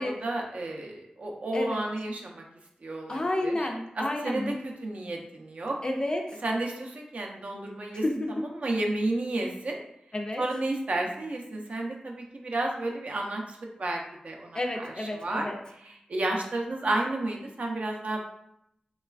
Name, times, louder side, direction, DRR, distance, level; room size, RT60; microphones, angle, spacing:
voice 1, 0.0-2.4 2.8-3.6 4.0-5.8 6.4-8.0 8.4-9.8 10.4-15.5 15.8-18.2, right 2 dB, 60° right, 0 dB, 0.5 m, -32 dB
voice 2, 3.1-4.5 5.8-6.4 8.0-8.4 10.1-10.4 14.5-15.6, left 1 dB, 30° left, 3 dB, 0.3 m, -30 dB
3.1 x 2.2 x 2.3 m, 0.76 s
wide cardioid pair, 95°, 3 cm